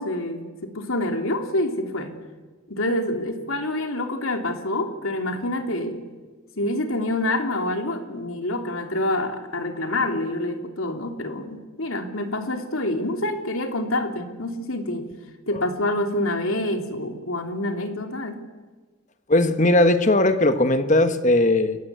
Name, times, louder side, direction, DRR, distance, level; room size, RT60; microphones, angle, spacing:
voice 1, 0.0-2.1 2.7-6.0 6.6-15.1 15.5-18.4, left 1 dB, 70° left, 5 dB, 3.1 m, -27 dB
voice 2, 19.3-21.8, left 1 dB, 35° left, 10 dB, 1.4 m, -18 dB
29.0 x 21.5 x 8.2 m, 1.4 s
head